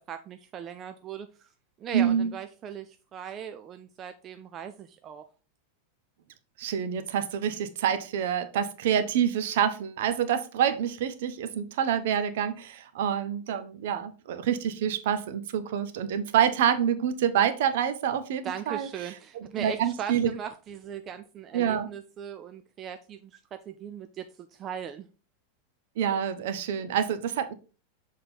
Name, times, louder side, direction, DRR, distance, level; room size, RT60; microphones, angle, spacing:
voice 1, 0.1-1.5 1.8-5.2 18.4-23.4 23.7-25.1, right 8 dB, 35° right, 0.5 m, -39 dB
voice 2, 1.9-2.3 6.6-18.9 19.3-20.3 21.5-21.9 26.0-27.5, right 9 dB, 60° right, 0.8 m, -27 dB
6.8 x 3.7 x 4.2 m
figure-of-eight pair, 90°, 0 cm